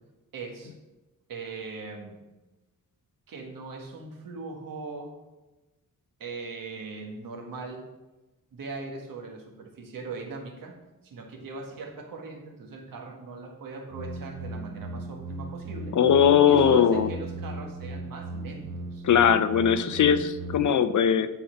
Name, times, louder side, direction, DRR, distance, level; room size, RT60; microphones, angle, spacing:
voice 1, 0.3-0.7 1.3-2.2 3.3-5.1 6.2-7.8 8.5-10.8 11.0-16.0 16.4-19.0, right 3 dB, 85° right, 1 dB, 1.7 m, -40 dB
sound 1, 13.9-20.5, right 2 dB, 65° right, 1.7 m, -37 dB
voice 2, 15.9-17.1 19.0-21.3, left 8 dB, 65° left, 11 dB, 0.6 m, -20 dB
10.5 x 4.3 x 5.8 m, 1.1 s
wide cardioid pair, 120°, 33 cm